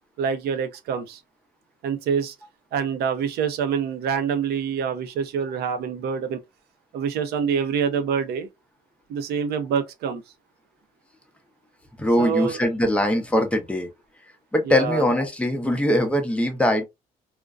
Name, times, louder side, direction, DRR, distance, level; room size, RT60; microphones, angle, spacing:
voice 1, 0.2-1.2 1.8-2.3 2.7-6.4 6.9-8.5 9.1-10.2 12.2-12.6 14.6-15.0, right 7 dB, 70° right, 0.6 m, -26 dB
voice 2, 12.0-13.9 14.5-16.8, left 1 dB, 5° left, 0.7 m, -22 dB
2.5 x 2.1 x 2.4 m
cardioid pair, 110°, 17 cm